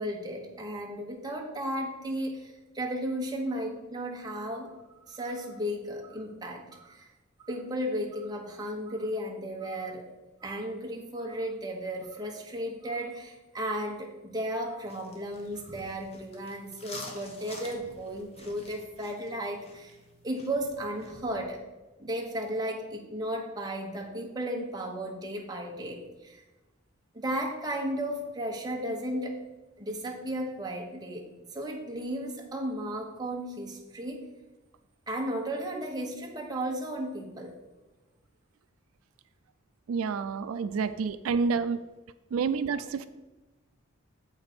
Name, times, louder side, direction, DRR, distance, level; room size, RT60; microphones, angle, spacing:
voice 1, 0.0-4.7 5.1-7.1 7.4-10.1 10.4-20.0 20.2-21.6 22.0-26.4 27.1-29.4 29.8-31.3 31.5-34.2 35.1-37.5, right 1 dB, 20° right, 0 dB, 1.1 m, -34 dB
sound 1, 14.9-21.4, left 2 dB, 30° left, 1.0 m, -48 dB
voice 2, 39.9-41.8 42.3-43.1, right 5 dB, 85° right, 12 dB, 0.3 m, -29 dB
7.8 x 5.2 x 4.2 m, 1.1 s
head